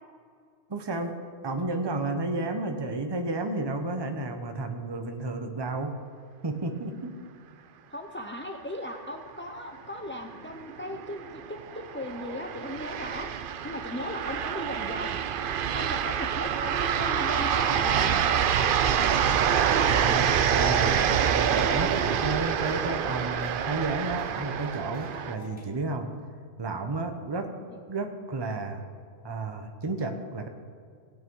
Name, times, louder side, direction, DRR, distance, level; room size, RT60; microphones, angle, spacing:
voice 1, 0.7-1.2 1.4-6.0 6.4-7.1 19.9-21.0 21.3-26.1 26.6-27.5 27.9-28.8 29.2-30.5, right 3 dB, 25° right, 5 dB, 0.9 m, -32 dB
voice 2, 7.9-11.6 11.9-13.3 13.6-15.2 15.7-18.4 20.6-21.0 27.7-27.8, left 1 dB, 15° left, 3 dB, 0.4 m, -37 dB
sound 1, 10.5-25.3, right 8 dB, 55° right, 0.6 m, -26 dB
sound 2, 20.6-25.7, left 1 dB, 5° right, 2.9 m, -49 dB
18.0 x 8.6 x 4.7 m, 2.2 s
omnidirectional pair, 1.3 m